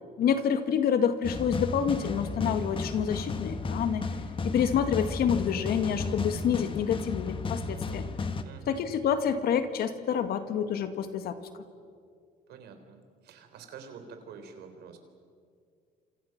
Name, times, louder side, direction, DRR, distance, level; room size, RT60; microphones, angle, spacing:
voice 1, 0.2-4.1 4.4-8.0 8.7-11.4, left 8 dB, 65° left, 9 dB, 2.0 m, -28 dB
sound 1, 1.2-8.4, left 3 dB, 30° left, 1.6 m, -33 dB
voice 2, 8.4-8.8 12.5-15.0, right 6 dB, 75° right, 6 dB, 3.9 m, -47 dB
29.0 x 26.5 x 6.0 m, 2.2 s
cardioid pair, 110°, 17 cm